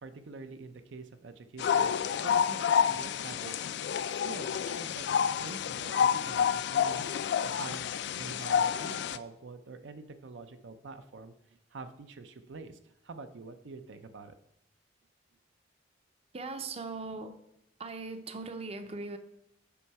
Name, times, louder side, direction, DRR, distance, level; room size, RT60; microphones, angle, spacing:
voice 1, 0.0-3.6 4.1-7.1 7.4-7.9 8.2-11.3 11.7-14.3, right 3 dB, 75° right, 9 dB, 0.5 m, -46 dB
sound 1, 1.6-9.2, left 7 dB, 65° left, 0.3 m, -29 dB
voice 2, 16.3-17.4 17.8-19.2, right 3 dB, 35° right, 9 dB, 0.6 m, -39 dB
7.0 x 5.5 x 4.6 m, 0.81 s
head